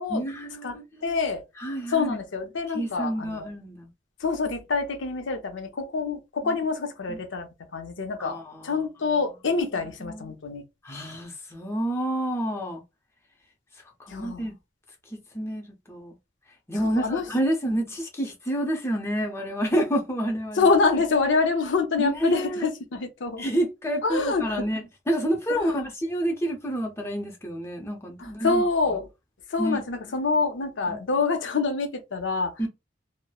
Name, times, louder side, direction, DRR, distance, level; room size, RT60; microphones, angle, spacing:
voice 1, 0.1-1.2 1.6-2.2 2.7-3.9 6.4-6.5 7.1-7.2 8.2-8.8 10.0-10.3 10.8-12.8 14.1-14.5 15.3-15.6 15.9-16.1 16.7-20.7 22.0-22.6 23.4-28.6 29.6-29.8 30.9-31.0 32.6-32.7, right 1 dB, 15° left, 0.6 m, -29 dB
voice 2, 0.6-1.4 1.9-3.5 4.2-8.4 8.6-10.6 14.1-14.5 16.8-17.3 17.6-17.8 20.6-23.5 24.0-24.7 25.5-25.8 28.2-29.1 29.5-32.5, left 4 dB, 75° left, 0.6 m, -26 dB
2.9 x 2.0 x 2.3 m
head